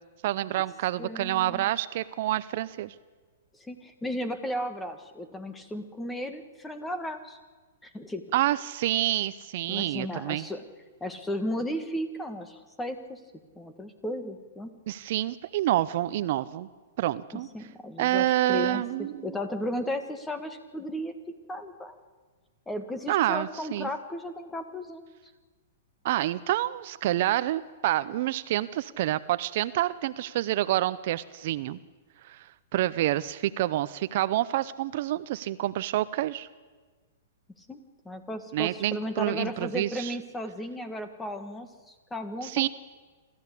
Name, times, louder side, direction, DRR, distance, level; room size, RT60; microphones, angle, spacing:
voice 1, 0.2-2.9 8.3-10.5 14.9-16.7 17.0-17.5 18.0-19.3 23.1-23.9 26.0-31.8 32.2-36.5 38.5-40.1 42.4-42.7, right 14 dB, 55° right, 15 dB, 0.6 m, -28 dB
voice 2, 1.0-1.7 3.6-7.4 7.8-8.2 9.7-10.6 11.0-13.2 13.6-14.7 17.3-18.8 19.2-21.1 21.5-22.0 22.7-25.1 37.7-42.7, left 1 dB, 10° left, 9 dB, 1.7 m, -35 dB
26.5 x 14.0 x 8.4 m, 1.4 s
hypercardioid pair, 140°, 0 cm